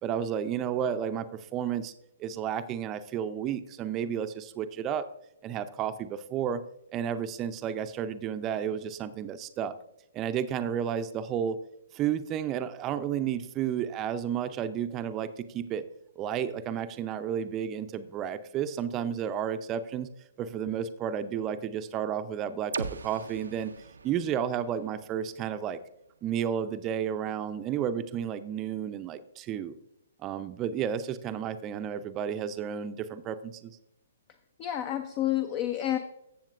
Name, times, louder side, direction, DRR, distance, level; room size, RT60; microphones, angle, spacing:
voice 1, 0.0-1.9 2.2-5.1 5.4-6.6 6.9-9.7 10.1-11.6 11.9-15.8 16.2-20.1 20.4-23.7 24.0-25.8 26.2-29.7 30.2-33.7, right 9 dB, 25° right, 11 dB, 0.6 m, -32 dB
sound 1, 22.7-26.6, right 4 dB, 80° right, 0.5 m, -41 dB
voice 2, 34.6-36.0, left 12 dB, 35° left, 9 dB, 0.6 m, -29 dB
14.5 x 7.2 x 2.5 m, 0.83 s
figure-of-eight pair, 125°, 0 cm